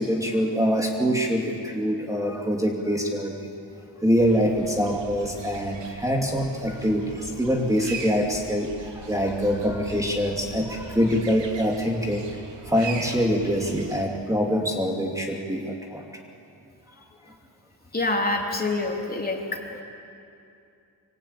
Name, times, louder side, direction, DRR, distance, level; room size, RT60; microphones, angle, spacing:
voice 1, 0.0-3.3 4.0-8.7 9.1-12.2 12.7-15.6 15.9-16.0, equal, 10° right, 0 dB, 2.6 m, -24 dB
sound 1, 4.2-14.1, right 5 dB, 90° right, 3.0 m, -40 dB
voice 2, 17.9-19.6, left 2 dB, 20° left, 1 dB, 3.3 m, -26 dB
26.0 x 25.5 x 8.7 m, 2.6 s
wide cardioid pair, 125°, 42 cm